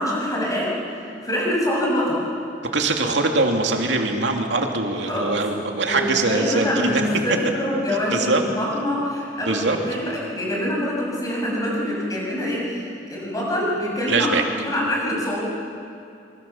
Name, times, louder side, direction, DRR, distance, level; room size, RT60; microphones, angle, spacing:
voice 1, 0.0-2.2 5.1-5.4 5.9-15.4, equal, 20° left, -3 dB, 7.1 m, -25 dB
voice 2, 2.7-7.0 8.1-8.4 9.4-9.8 14.1-14.4, right 3 dB, 70° right, 3 dB, 2.7 m, -22 dB
26.0 x 23.0 x 7.3 m, 2.6 s
head